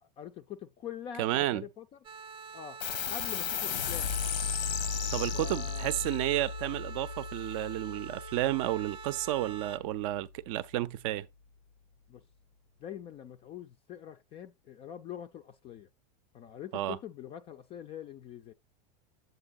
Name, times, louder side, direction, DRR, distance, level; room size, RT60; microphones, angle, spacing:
voice 1, 0.0-2.0 2.5-2.8 3.1-4.1 5.3-5.9 12.1-12.2 12.8-15.9 16.3-18.5, left 9 dB, 25° left, 0.4 m, -44 dB
voice 2, 1.2-1.6 5.1-11.3 16.7-17.0, right 15 dB, 50° right, 0.6 m, -31 dB
sound 1, 2.0-9.8, right 5 dB, 25° right, 0.8 m, -46 dB
sound 2, 2.8-9.7, left 7 dB, 85° left, 1.0 m, -35 dB
8.8 x 7.9 x 2.4 m
supercardioid pair, 150°, 21 cm